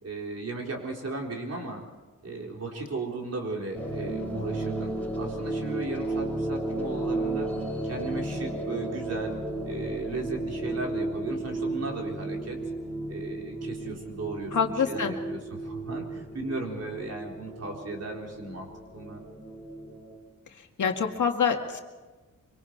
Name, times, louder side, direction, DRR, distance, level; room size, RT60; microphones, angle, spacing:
voice 1, 0.0-1.8 2.2-4.9 5.2-7.5 7.8-9.3 9.6-12.6 13.1-18.7 18.9-19.2, right 3 dB, 50° right, 0 dB, 4.1 m, -36 dB
sound 1, 3.7-20.2, right 2 dB, 5° left, 5.3 m, -34 dB
voice 2, 14.5-15.1 20.8-21.8, left 6 dB, 70° left, 3 dB, 2.0 m, -26 dB
25.0 x 24.5 x 4.6 m, 1.2 s
wide cardioid pair, 155°, 31 cm